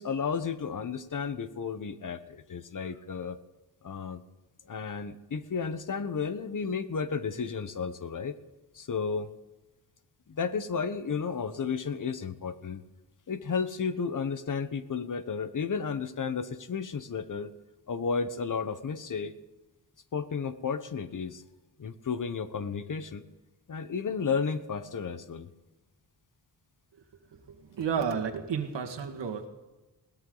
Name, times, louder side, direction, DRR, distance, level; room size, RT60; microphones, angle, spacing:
voice 1, 0.0-3.4 3.8-4.2 4.7-8.4 8.7-9.3 10.3-12.8 13.3-17.5 17.9-19.3 20.1-21.4 21.8-23.2 23.7-25.5, left 5 dB, 50° left, 12 dB, 1.0 m, -33 dB
voice 2, 27.5-29.5, right 6 dB, 85° right, 4 dB, 1.9 m, -32 dB
21.0 x 17.5 x 3.9 m, 1.1 s
wide cardioid pair, 150°, 42 cm